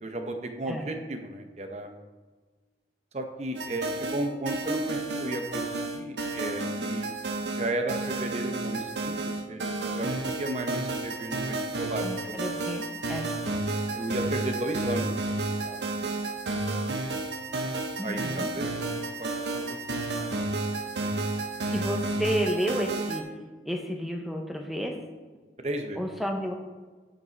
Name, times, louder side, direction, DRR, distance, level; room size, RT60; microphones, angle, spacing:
voice 1, 0.0-1.9 3.1-5.6 5.9-7.1 7.5-9.2 9.5-12.4 13.9-15.1 15.6-15.8 18.0-18.2 18.5-20.4 25.6-26.0, right 1 dB, 40° right, 5 dB, 0.7 m, -34 dB
sound 1, 3.5-23.2, right 2 dB, 80° right, 0.8 m, -31 dB
voice 2, 12.0-13.3 18.0-18.5 21.7-23.2 23.6-25.0 26.0-26.5, equal, ahead, 2 dB, 0.8 m, -31 dB
9.0 x 5.3 x 4.0 m, 1.4 s
head